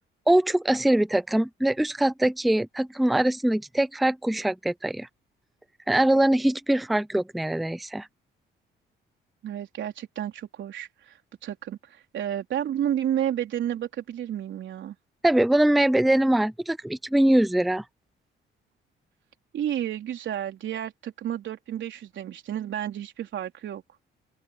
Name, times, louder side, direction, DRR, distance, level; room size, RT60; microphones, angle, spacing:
voice 1, 0.3-5.1 5.9-8.1 15.2-17.8, right 1 dB, ahead, 0.4 m, -22 dB
voice 2, 9.4-14.9 19.5-23.8, right 10 dB, 70° right, 4.1 m, -31 dB
open air
cardioid pair, 90°, 20 cm